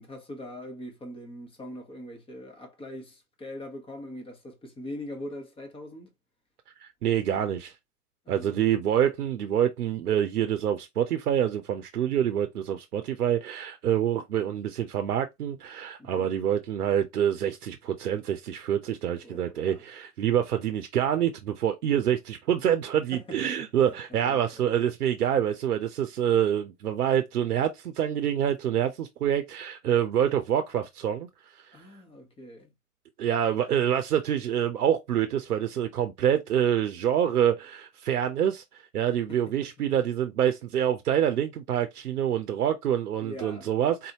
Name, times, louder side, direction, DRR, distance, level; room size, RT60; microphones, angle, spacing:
voice 1, 0.0-6.1 8.2-8.6 16.0-16.3 19.2-19.8 23.1-24.6 31.7-32.7 39.3-39.7 43.2-43.7, left 1 dB, 10° left, 1.0 m, -42 dB
voice 2, 6.8-7.7 8.3-31.3 33.2-38.6 38.9-44.1, right 10 dB, 80° right, 0.7 m, -26 dB
4.0 x 2.7 x 2.8 m
hypercardioid pair, 105°, 45 cm